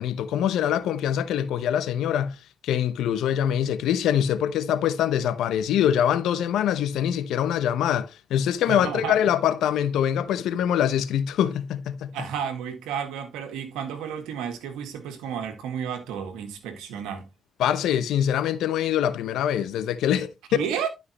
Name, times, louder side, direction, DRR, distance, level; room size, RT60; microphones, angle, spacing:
voice 1, 0.0-12.3 17.6-20.6, left 10 dB, 80° left, 0.9 m, -24 dB
voice 2, 8.7-9.2 12.1-17.2 20.5-20.9, right 8 dB, 90° right, 1.7 m, -32 dB
11.5 x 5.5 x 3.0 m
supercardioid pair, 50°, 0 cm